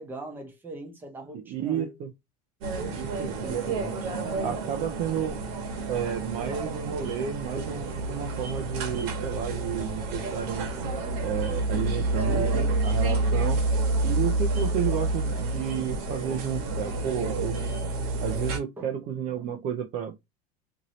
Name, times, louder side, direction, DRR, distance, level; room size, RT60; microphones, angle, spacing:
voice 1, 0.0-2.0 3.3-4.0 12.2-12.8 18.8-18.9, right 2 dB, 10° right, 0.8 m, -40 dB
voice 2, 1.3-2.1 3.0-3.7 4.4-5.4 5.9-10.7 11.2-12.5 12.8-13.6 14.0-17.6 18.2-20.3, right 8 dB, 40° right, 0.4 m, -32 dB
sound 1, 2.6-18.6, right 2 dB, 70° right, 1.0 m, -29 dB
2.7 x 2.6 x 2.9 m
supercardioid pair, 155°, 20 cm